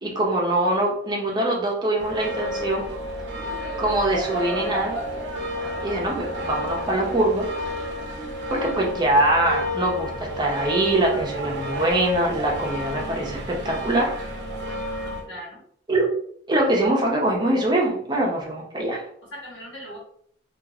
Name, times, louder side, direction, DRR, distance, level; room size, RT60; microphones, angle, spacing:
voice 1, 0.0-2.9 3.8-5.0 5.8-7.5 8.5-14.2 15.9-16.1 16.5-19.1, right 1 dB, 25° right, -2 dB, 0.6 m, -23 dB
sound 1, 2.0-15.2, equal, 75° right, 0.6 m, -31 dB
voice 2, 14.7-15.6 19.2-20.0, equal, 75° left, -4 dB, 1.2 m, -40 dB
2.9 x 2.4 x 2.4 m, 0.63 s
head